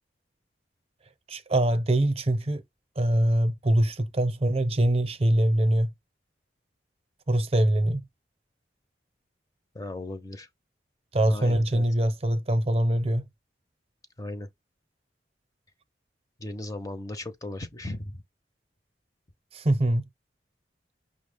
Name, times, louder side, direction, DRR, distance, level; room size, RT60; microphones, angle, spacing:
voice 1, 1.3-2.6 3.0-5.9 7.3-8.0 11.1-13.3 19.5-20.1, right 1 dB, 35° right, 0.6 m, -23 dB
voice 2, 9.7-10.5 11.3-11.8 14.2-14.5 16.4-18.2, left 1 dB, 20° left, 0.5 m, -36 dB
5.8 x 2.0 x 3.3 m
head